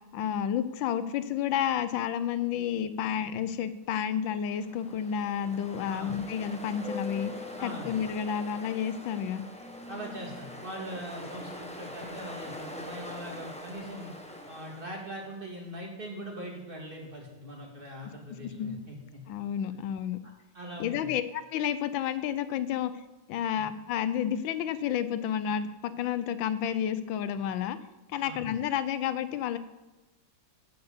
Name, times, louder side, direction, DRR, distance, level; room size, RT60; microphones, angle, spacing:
voice 1, 0.1-7.3 7.6-9.4 18.6-18.8 19.3-20.2 20.8-22.9 23.3-27.8 28.1-29.6, left 9 dB, 90° left, 12 dB, 1.4 m, -30 dB
Ocean, 4.3-15.4, left 1 dB, 5° left, 0.5 m, -43 dB
voice 2, 7.5-7.9 9.9-14.1 14.5-19.2 20.5-21.2 23.5-23.7 28.2-28.4, equal, 30° right, -1 dB, 2.1 m, -41 dB
8.1 x 7.7 x 7.2 m, 1.1 s
omnidirectional pair, 2.0 m